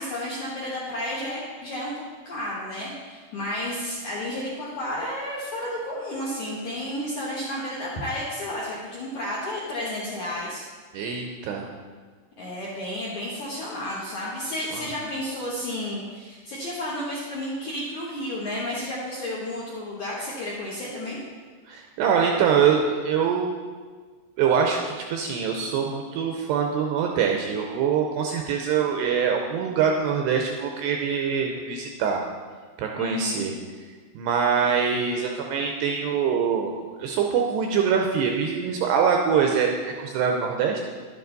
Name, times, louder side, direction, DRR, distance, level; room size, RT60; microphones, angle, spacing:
voice 1, 0.0-10.6 12.4-21.2 33.0-33.5, left 1 dB, 65° left, -7 dB, 1.9 m, -32 dB
voice 2, 10.9-11.7 14.7-14.9 21.7-23.5 24.4-32.2 32.8-33.5 34.2-36.7 37.0-40.8, right 6 dB, 80° right, 2 dB, 2.5 m, -24 dB
11.0 x 9.4 x 4.0 m, 1.5 s
omnidirectional pair, 5.5 m